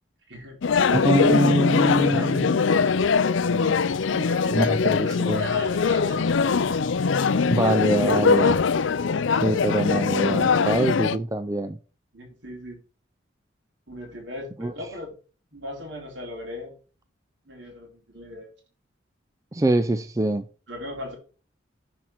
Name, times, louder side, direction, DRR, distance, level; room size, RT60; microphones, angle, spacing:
voice 1, 0.3-0.6 1.8-2.9 4.1-4.8 5.0-6.8 12.1-12.8 13.9-15.2 15.5-16.7 17.5-18.5 20.7-21.2, left 1 dB, 65° right, 3.9 m, -38 dB
sound 1, 0.6-11.2, left 5 dB, 75° left, 0.5 m, -22 dB
voice 2, 0.9-2.9 3.5-3.8 4.5-5.5 7.5-8.6 9.3-11.8 14.6-14.7 19.5-20.5, right 1 dB, 15° right, 0.4 m, -24 dB
10.5 x 4.5 x 5.9 m
head